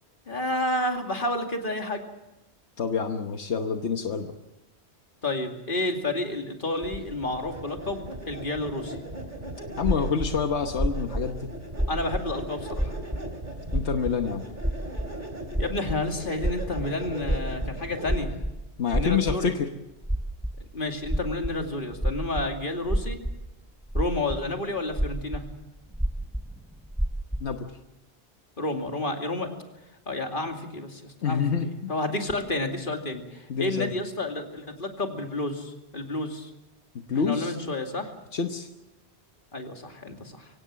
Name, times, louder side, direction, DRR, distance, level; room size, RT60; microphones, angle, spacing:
voice 1, 0.3-2.0 5.2-9.0 11.9-12.9 15.6-18.3 18.9-19.5 20.7-23.2 23.9-25.4 28.6-29.5 30.1-36.5 37.2-38.1 39.5-40.5, left 2 dB, 50° left, 4 dB, 2.7 m, -30 dB
voice 2, 2.8-4.3 9.8-11.5 13.7-14.4 18.8-19.7 27.4-27.7 31.2-31.9 33.5-33.9 36.9-37.5 38.3-38.7, left 6 dB, 80° left, 5 dB, 1.4 m, -27 dB
sound 1, 6.8-18.5, right 1 dB, 45° right, 3.0 m, -39 dB
sound 2, 9.4-12.3 12.6-13.4 13.7-14.2 14.6-15.1 15.5-19.6 20.0-20.6 21.0-22.5 22.8-24.4 24.9-25.5 25.8-27.4, right 1 dB, 5° right, 1.0 m, -29 dB
24.0 x 17.5 x 7.5 m, 0.95 s
omnidirectional pair, 1.1 m